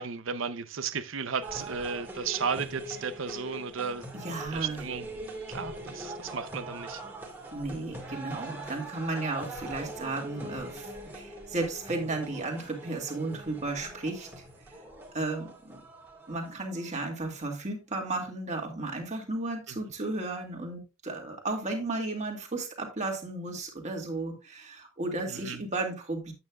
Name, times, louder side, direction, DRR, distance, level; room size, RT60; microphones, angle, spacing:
voice 1, 0.0-4.1 4.5-5.1 5.5-7.0 19.7-19.8 25.3-25.6, right 6 dB, 65° right, 0.7 m, -34 dB
sound 1, 1.4-17.5, right 1 dB, 10° right, 2.1 m, -42 dB
voice 2, 4.2-4.8 7.5-14.4 15.1-15.8 16.3-26.3, right 2 dB, 35° right, 2.2 m, -34 dB
8.9 x 8.6 x 2.4 m
head